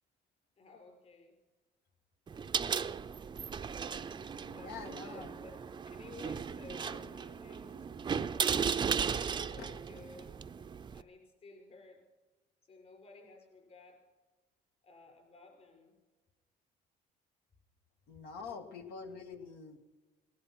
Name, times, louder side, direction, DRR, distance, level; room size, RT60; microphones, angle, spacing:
voice 1, 0.6-1.3 4.1-7.6 9.4-10.4 10.9-12.0 12.7-14.0 14.8-16.0, left 3 dB, 40° left, 1 dB, 5.6 m, -55 dB
sound 1, 2.3-11.0, right 6 dB, 25° right, 0.5 m, -36 dB
voice 2, 4.4-5.3 6.9-7.0 8.5-8.7 9.1-9.2 9.6-9.7 18.1-19.8, left 5 dB, 80° left, 6 dB, 1.9 m, -46 dB
19.0 x 11.5 x 5.8 m, 1.2 s
cardioid pair, 110°, 17 cm